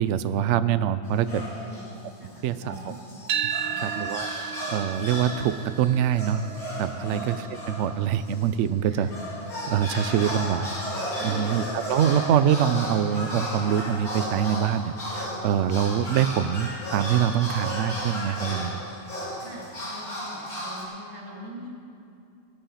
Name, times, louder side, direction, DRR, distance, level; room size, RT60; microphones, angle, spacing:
voice 1, 0.0-1.4 2.4-2.9 3.8-6.4 6.8-7.4 7.7-9.1 9.7-10.7 11.2-18.8, right 9 dB, 65° right, 13 dB, 0.8 m, -24 dB
sound 1, 1.0-1.9 2.4-8.4 8.9-20.8, equal, 75° left, 3.5 m, -34 dB
voice 2, 1.3-1.9 2.2-3.0 3.6-3.9 7.0-7.3 8.9-9.1 11.2-11.7 12.0-12.1 19.4-21.7, equal, 50° right, -4 dB, 3.2 m, -43 dB
sound 2, 3.3-11.5, right 8 dB, 90° right, 1.1 m, -36 dB
18.5 x 8.9 x 5.6 m, 2.6 s
omnidirectional pair, 1.6 m